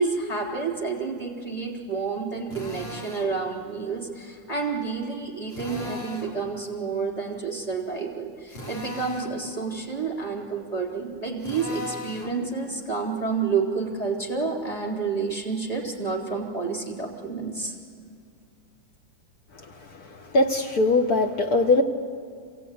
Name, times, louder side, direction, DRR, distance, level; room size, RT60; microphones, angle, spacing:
voice 1, 0.0-17.8, right 4 dB, 20° left, -1 dB, 3.5 m, -29 dB
Drill, 2.5-3.3 5.5-6.4 8.5-9.4 11.4-12.4, left 1 dB, 90° left, 3.4 m, -37 dB
voice 2, 20.1-21.8, left 2 dB, 60° left, 5 dB, 1.3 m, -21 dB
26.5 x 17.0 x 9.3 m, 2.2 s
omnidirectional pair, 2.1 m